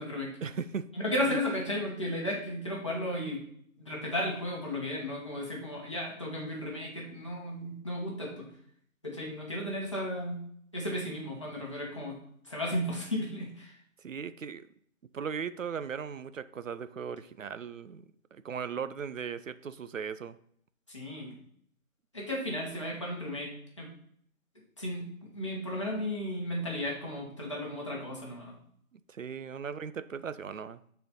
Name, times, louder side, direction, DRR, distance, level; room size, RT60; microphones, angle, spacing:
voice 1, 0.4-0.9 1.2-1.4 14.0-14.7 15.1-18.0 18.3-20.4 29.1-30.8, right 6 dB, 65° right, 14 dB, 0.6 m, -37 dB
voice 2, 1.0-3.4 3.8-8.5 9.0-10.4 10.7-12.1 12.4-13.7 20.9-21.4 22.1-23.5 23.8-23.9 24.8-25.1 25.3-28.6, left 1 dB, 20° left, -4 dB, 1.2 m, -34 dB
6.7 x 4.2 x 5.3 m, 0.65 s
figure-of-eight pair, 175°, 42 cm